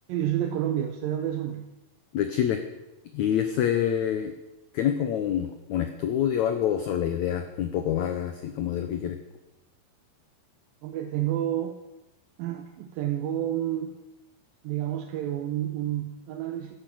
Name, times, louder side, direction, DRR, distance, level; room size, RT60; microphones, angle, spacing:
voice 1, 0.1-1.7 10.8-11.8 12.4-14.0 14.6-16.7, right 11 dB, 75° right, 4 dB, 2.4 m, -29 dB
voice 2, 2.1-2.7 3.1-4.3 4.7-9.2, left 9 dB, 85° left, 8 dB, 1.6 m, -26 dB
11.5 x 10.5 x 7.7 m, 1.0 s
omnidirectional pair, 4.5 m